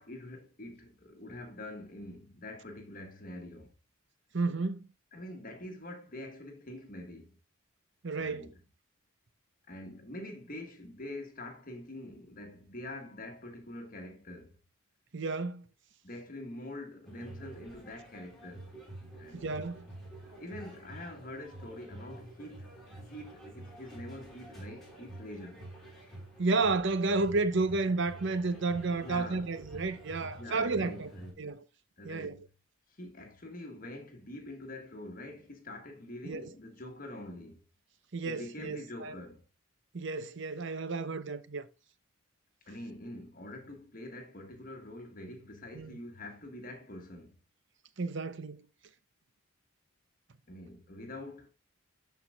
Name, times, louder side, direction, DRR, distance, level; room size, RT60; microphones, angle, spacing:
voice 1, 0.0-3.7 5.1-7.4 8.2-8.5 9.7-14.6 16.0-18.7 19.2-19.5 20.4-25.7 29.0-29.5 30.2-31.3 32.0-32.4 32.9-37.6 38.2-39.4 42.6-47.4 50.5-51.5, left 1 dB, 40° left, 1.4 m, -45 dB
voice 2, 4.3-4.8 8.0-8.5 15.1-15.7 19.3-19.9 26.4-31.1 31.4-31.6 32.0-32.4 36.2-36.5 38.1-39.2 39.9-41.7 45.7-46.0 48.0-48.7, right 3 dB, 55° right, 0.7 m, -32 dB
sound 1, 17.1-31.3, right 1 dB, ahead, 3.8 m, -48 dB
12.5 x 4.6 x 2.3 m
head